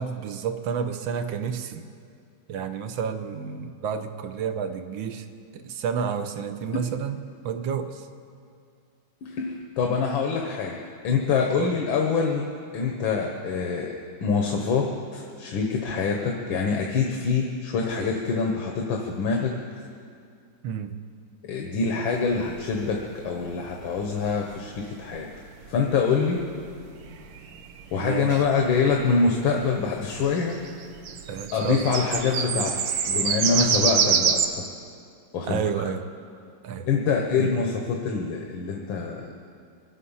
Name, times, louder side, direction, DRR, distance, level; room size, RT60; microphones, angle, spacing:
voice 1, 0.0-1.8 2.5-5.3 5.5-8.1 11.6-11.7 20.6-21.0 27.9-28.4 31.3-31.9 32.3-32.5 33.6-33.8 35.4-36.1 36.6-36.9 37.4-37.5, right 7 dB, 80° right, 8 dB, 1.6 m, -30 dB
voice 2, 9.2-10.8 11.0-12.5 12.7-13.9 14.2-19.5 21.5-25.3 25.7-26.4 27.9-30.6 31.5-32.8 33.0-34.7 35.3-35.6 36.9-39.3, left 5 dB, 85° left, 1 dB, 1.8 m, -25 dB
sound 1, 22.2-34.5, right 7 dB, 60° right, 1.1 m, -28 dB
23.5 x 8.4 x 5.6 m, 2.3 s
omnidirectional pair, 2.1 m